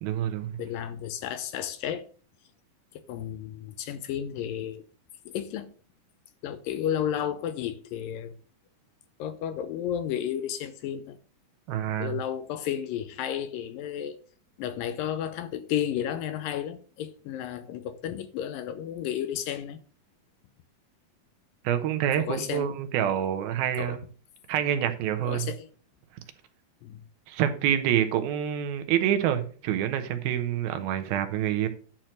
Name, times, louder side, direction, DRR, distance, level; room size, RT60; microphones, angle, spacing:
voice 1, 0.0-0.6 11.7-12.2 21.6-24.0 24.5-25.5 27.3-31.7, right 10 dB, 90° right, 2.8 m, -27 dB
voice 2, 0.6-2.1 2.9-4.8 5.3-5.7 6.4-8.3 9.2-11.2 12.0-14.2 14.6-19.8 22.2-22.8 23.8-24.0 25.2-25.7 26.8-27.0, left 10 dB, 80° left, 2.3 m, -32 dB
10.5 x 4.5 x 6.3 m
omnidirectional pair, 4.2 m